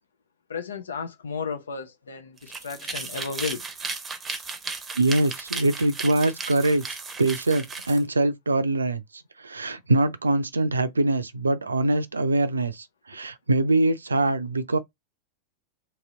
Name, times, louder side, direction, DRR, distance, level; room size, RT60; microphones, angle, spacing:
voice 1, 0.5-3.7, left 5 dB, 70° left, 0.6 m, -33 dB
sound 1, 2.4-8.0, right 4 dB, 15° right, 0.8 m, -35 dB
voice 2, 5.0-14.8, right 2 dB, 75° right, 0.4 m, -24 dB
2.9 x 2.9 x 3.7 m
figure-of-eight pair, 90°, 0 cm